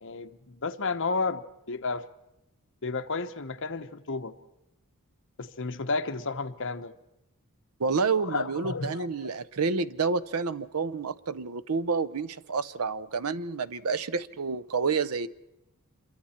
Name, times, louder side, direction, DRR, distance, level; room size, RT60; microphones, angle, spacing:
voice 1, 0.0-2.1 2.8-4.3 5.4-6.9 8.2-9.3, left 4 dB, 60° left, 8 dB, 1.1 m, -32 dB
voice 2, 7.8-15.3, right 4 dB, 75° right, 15 dB, 0.8 m, -29 dB
27.0 x 23.5 x 4.4 m, 0.91 s
head